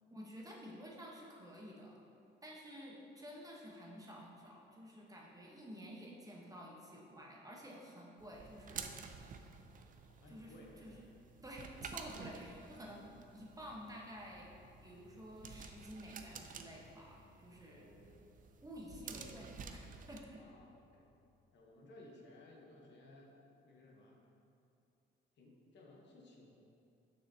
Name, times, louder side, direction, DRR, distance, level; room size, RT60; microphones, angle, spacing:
voice 1, 0.1-2.0 2.4-8.9 10.3-11.0 11.4-13.0 13.3-14.5 14.8-17.9 18.6-19.8 20.1-20.4, equal, 15° right, -3 dB, 1.0 m, -51 dB
sound 1, 8.2-20.2, right 6 dB, 45° right, 0.4 m, -52 dB
voice 2, 10.2-11.0 17.7-18.3 20.4-21.0 21.5-24.2 25.4-26.6, left 2 dB, 65° left, -1 dB, 1.0 m, -59 dB
sound 2, 13.6-21.4, left 7 dB, 65° right, 0.9 m, -72 dB
6.4 x 5.8 x 2.8 m, 2.7 s
cardioid pair, 90°, 20 cm